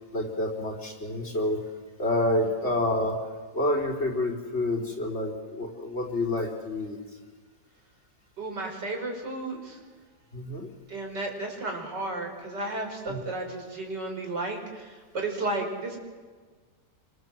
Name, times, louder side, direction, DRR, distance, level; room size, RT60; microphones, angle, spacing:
voice 1, 0.1-1.6 2.0-3.2 3.5-7.0 10.3-10.7 13.1-13.2, left 1 dB, 40° left, 1 dB, 4.2 m, -28 dB
voice 2, 8.4-9.8 10.9-16.0, right 2 dB, 85° right, 2 dB, 5.5 m, -33 dB
28.0 x 25.0 x 7.6 m, 1.4 s
omnidirectional pair, 1.8 m